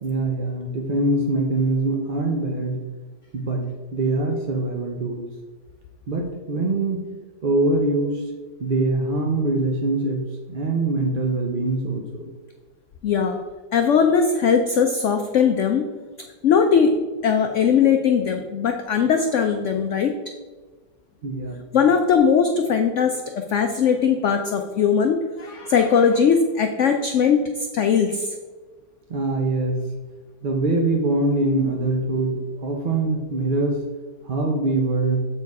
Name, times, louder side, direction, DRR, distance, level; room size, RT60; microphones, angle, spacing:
voice 1, 0.0-2.8 3.3-5.3 6.1-7.0 7.4-8.2 8.6-12.2 21.2-21.6 29.1-29.8 30.4-33.8 34.2-35.3, right 2 dB, 45° right, 1 dB, 0.6 m, -23 dB
voice 2, 13.0-13.4 13.7-15.9 16.4-20.2 21.7-28.3, left 6 dB, 85° left, 5 dB, 0.6 m, -20 dB
7.7 x 4.6 x 4.7 m, 1.4 s
omnidirectional pair, 1.9 m